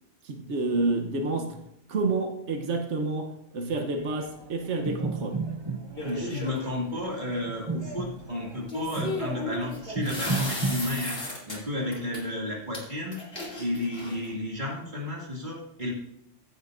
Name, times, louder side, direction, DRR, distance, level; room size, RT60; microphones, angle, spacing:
voice 1, 0.2-1.6 1.9-5.4, right 3 dB, 75° right, 1.3 m, -29 dB
sound 1, 4.0-10.9, right 4 dB, 25° right, 0.8 m, -34 dB
sound 2, 6.0-6.7 8.7-11.6 11.9-12.2 12.7-12.8 13.1-14.3, left 2 dB, 55° left, 3.1 m, -35 dB
voice 2, 6.0-11.2 11.5-13.2 13.6-15.9, left 1 dB, 40° right, 2.6 m, -32 dB
15.5 x 8.0 x 2.6 m
omnidirectional pair, 1.2 m